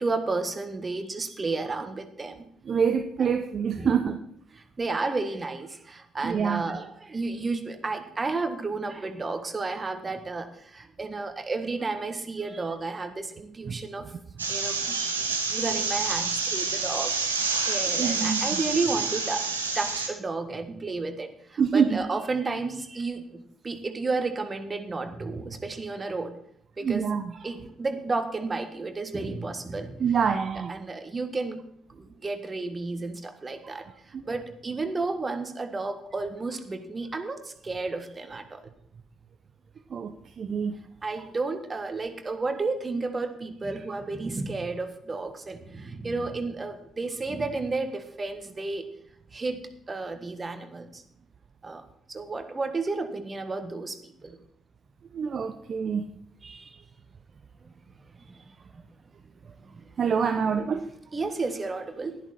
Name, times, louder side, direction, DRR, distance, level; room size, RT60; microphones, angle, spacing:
voice 1, 0.0-2.4 3.2-3.3 3.8-3.9 4.8-14.1 14.5-15.0 15.5-17.1 17.7-19.5 19.7-26.4 26.8-27.1 27.4-30.0 30.7-31.6 31.9-33.8 34.2-38.6 41.0-48.9 49.3-49.6 49.9-51.0 51.6-51.8 52.1-54.4 56.4-56.8 58.2-58.4 59.6-59.8 61.1-62.2, right 3 dB, 30° right, 7 dB, 1.7 m, -32 dB
voice 2, 2.7-4.2 6.2-6.6 13.7-13.8 18.0-18.4 21.6-22.0 26.8-27.3 30.0-30.8 34.1-34.2 39.9-40.7 55.1-56.0 60.0-60.8, right 6 dB, 45° right, 7 dB, 0.7 m, -26 dB
sound 1, 14.4-20.1, right 4 dB, 90° right, 1.0 m, -28 dB
12.0 x 11.0 x 4.3 m, 0.69 s
figure-of-eight pair, 45°, 0 cm